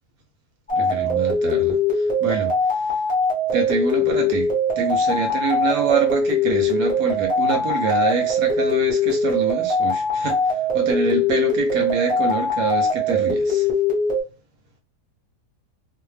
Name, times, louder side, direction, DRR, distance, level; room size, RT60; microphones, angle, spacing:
sound 1, 0.7-14.2, left 2 dB, 10° left, 0.6 m, -21 dB
voice 1, 0.7-2.6 3.5-13.7, right 5 dB, 70° right, 1.0 m, -26 dB
2.7 x 2.1 x 3.1 m
omnidirectional pair, 1.7 m